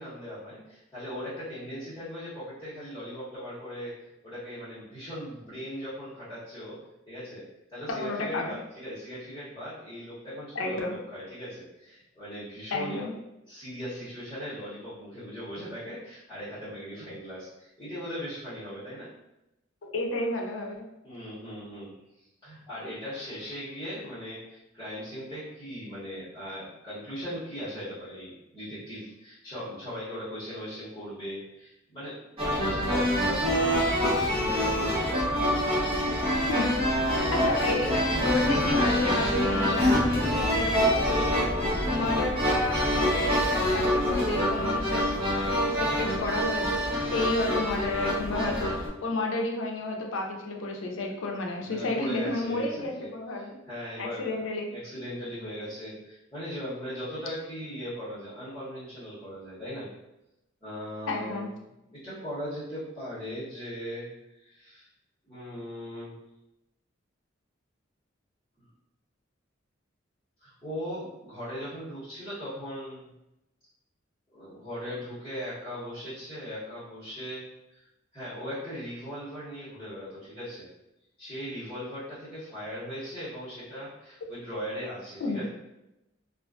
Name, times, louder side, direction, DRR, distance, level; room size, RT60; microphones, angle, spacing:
voice 1, 0.0-3.9 4.2-6.8 7.1-7.4 7.7-13.0 13.5-19.1 21.0-21.9 22.4-35.2 37.1-37.7 51.6-53.1 53.4-54.4 54.7-59.9 60.6-61.5 61.9-64.1 64.4-64.9 65.2-66.1 70.4-73.0 74.3-77.5 77.7-77.8 78.1-80.7 81.2-85.4, equal, 20° left, -13 dB, 1.1 m, -39 dB
voice 2, 7.9-8.6 10.5-10.9 12.7-13.1 19.8-20.8 36.5-36.7 37.1-41.5 41.9-45.1 45.7-53.6 54.0-54.7 61.1-61.5 85.2-85.4, left 2 dB, 85° left, 1 dB, 0.5 m, -31 dB
sound 1, 32.4-48.9, equal, 30° right, 0.9 m, -26 dB
2.4 x 2.3 x 2.3 m, 0.90 s
head